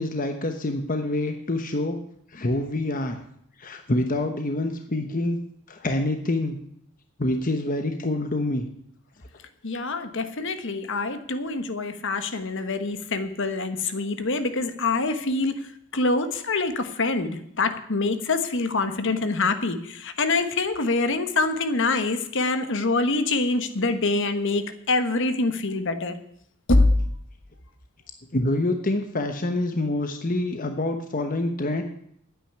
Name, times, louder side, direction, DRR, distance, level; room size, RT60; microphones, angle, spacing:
voice 1, 0.0-2.0 2.3-3.2 3.6-5.4 5.7-6.6 7.2-8.7 28.3-31.8, left 1 dB, 40° left, 6 dB, 1.0 m, -26 dB
voice 2, 9.6-15.6 15.9-26.1 26.7-26.9, left 3 dB, 55° left, 9 dB, 1.3 m, -25 dB
9.6 x 8.8 x 9.9 m, 0.70 s
head